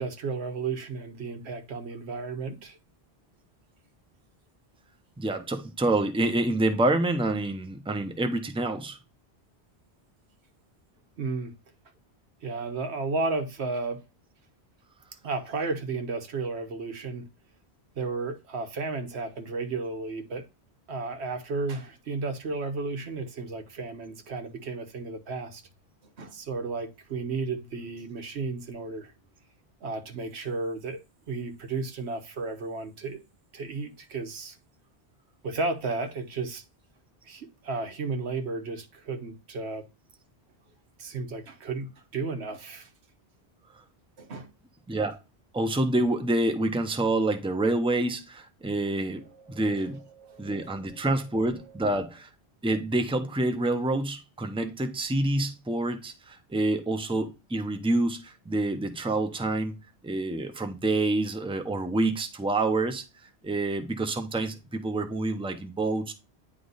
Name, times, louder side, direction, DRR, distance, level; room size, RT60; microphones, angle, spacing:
voice 1, 0.0-2.8 11.2-11.5 12.4-14.0 15.2-17.3 18.0-20.4 20.9-25.6 26.0-29.1 29.8-31.0 31.3-33.2 33.5-34.6 35.4-36.6 37.2-39.9 41.0-42.9 44.2-44.5 49.1-51.0 51.7-51.8, right 3 dB, 90° right, 1.3 m, -33 dB
voice 2, 5.2-9.0 44.9-45.2 45.5-49.2 49.5-50.0 50.4-52.3 52.6-59.7 60.0-63.0 63.4-66.1, right 2 dB, 5° right, 0.6 m, -27 dB
9.3 x 3.3 x 4.0 m
omnidirectional pair, 1.1 m